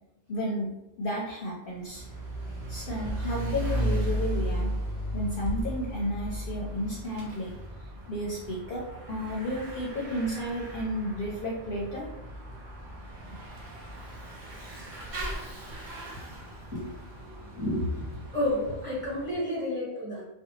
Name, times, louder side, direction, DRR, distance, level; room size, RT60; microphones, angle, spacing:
voice 1, 0.3-0.7 1.0-2.0 2.7-4.8 5.1-7.5 8.1-12.0, equal, 60° left, -4 dB, 0.7 m, -32 dB
Bicycle / Mechanisms, 1.7-19.3, equal, 45° right, 0.8 m, -36 dB
voice 2, 17.2-20.2, left 1 dB, 10° right, -8 dB, 1.0 m, -31 dB
2.6 x 2.2 x 2.8 m, 0.93 s
omnidirectional pair, 1.2 m